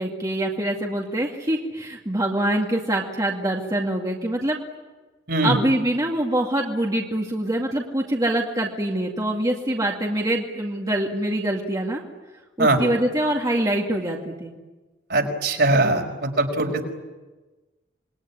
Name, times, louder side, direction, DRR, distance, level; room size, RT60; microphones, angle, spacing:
voice 1, 0.0-4.6 5.4-12.0 12.6-14.5, right 1 dB, 20° right, -1 dB, 2.3 m, -24 dB
voice 2, 15.1-16.8, right 2 dB, 60° right, 2 dB, 5.1 m, -21 dB
27.5 x 21.5 x 9.9 m, 1.2 s
head